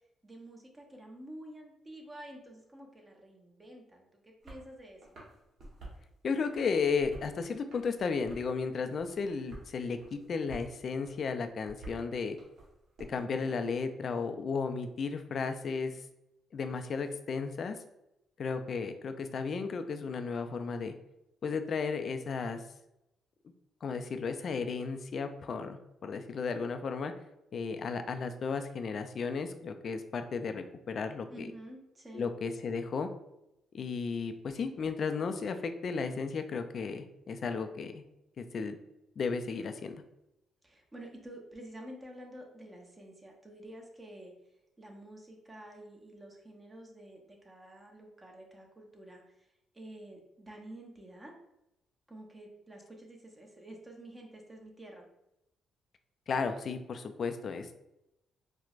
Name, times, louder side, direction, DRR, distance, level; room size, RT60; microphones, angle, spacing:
voice 1, 0.2-5.0 31.3-32.3 40.6-44.3 44.8-51.3 52.1-55.1, right 1 dB, 20° right, 1 dB, 0.8 m, -49 dB
sound 1, 4.4-4.7 5.0-6.0 6.4-7.3 7.7-8.6 9.0-9.7 10.0-10.7 11.0-13.0, right 1 dB, 60° right, 1.1 m, -49 dB
voice 2, 6.2-12.4 13.1-16.0 16.5-17.8 18.4-20.9 21.4-22.6 23.8-27.1 27.5-31.5 32.1-33.1 33.7-38.0 38.4-38.8 39.2-40.0 56.3-57.7, left 5 dB, 50° left, 8 dB, 0.3 m, -34 dB
4.4 x 2.1 x 2.4 m, 0.87 s
cardioid pair, 90°, 0 cm